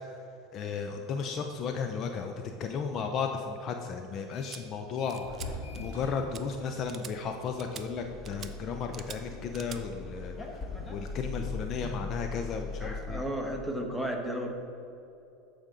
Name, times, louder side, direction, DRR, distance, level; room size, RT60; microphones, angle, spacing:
voice 1, 0.5-5.2 5.8-10.6 10.9-13.2, left 5 dB, 45° left, 5 dB, 0.6 m, -34 dB
sound 1, 4.1-4.7 5.0-13.4, left 1 dB, 85° left, 2.0 m, -46 dB
sound 2, 4.5-4.6 5.1-5.5 5.7-6.0 6.3-6.4 6.9-7.1 7.6-7.8 8.3-8.5 8.9-9.2 9.5-9.8, right 8 dB, 35° right, 0.6 m, -44 dB
sound 3, 8.0-13.2, left 3 dB, 20° left, 1.3 m, -40 dB
voice 2, 12.8-14.5, right 1 dB, ahead, 2 dB, 1.3 m, -33 dB
12.5 x 5.2 x 3.8 m, 2.8 s
supercardioid pair, 105°, 0 cm